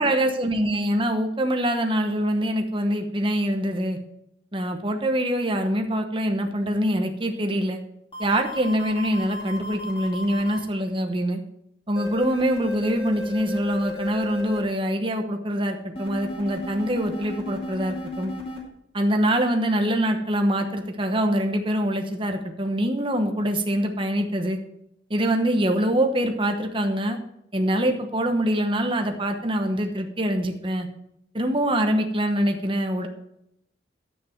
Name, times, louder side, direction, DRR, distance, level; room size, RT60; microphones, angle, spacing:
voice 1, 0.0-4.0 4.5-7.8 8.2-11.4 11.9-18.3 18.9-24.6 25.1-27.2 27.5-30.9 31.3-33.1, right 1 dB, 25° right, 4 dB, 1.0 m, -24 dB
sound 1, 8.1-10.6 12.0-14.6 15.9-18.6, left 2 dB, 30° left, 2.3 m, -35 dB
10.5 x 8.5 x 4.5 m, 0.76 s
head